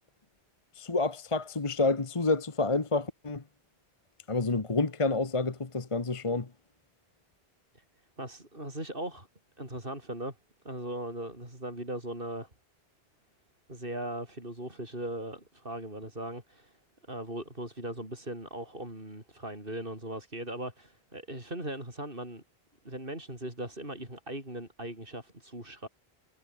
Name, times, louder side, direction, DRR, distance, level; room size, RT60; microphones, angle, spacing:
voice 1, 0.8-3.4 4.3-6.5, left 3 dB, 30° left, 1.3 m, -28 dB
voice 2, 8.2-9.3 9.6-10.4 10.6-12.5 13.7-16.8 17.1-22.4 22.8-25.9, right 1 dB, 60° right, 6.8 m, -39 dB
omnidirectional pair, 1.1 m